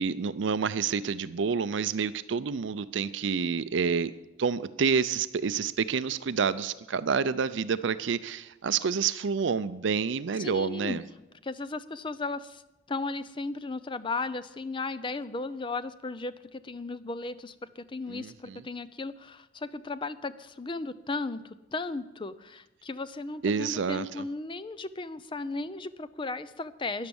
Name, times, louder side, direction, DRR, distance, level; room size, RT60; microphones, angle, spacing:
voice 1, 0.0-4.1 4.4-11.0 18.1-18.6 23.4-24.2, right 5 dB, 65° right, 14 dB, 0.5 m, -28 dB
voice 2, 10.4-11.0 11.4-12.6 12.9-27.1, left 3 dB, 25° left, 14 dB, 0.6 m, -35 dB
13.0 x 10.5 x 7.0 m, 0.99 s
head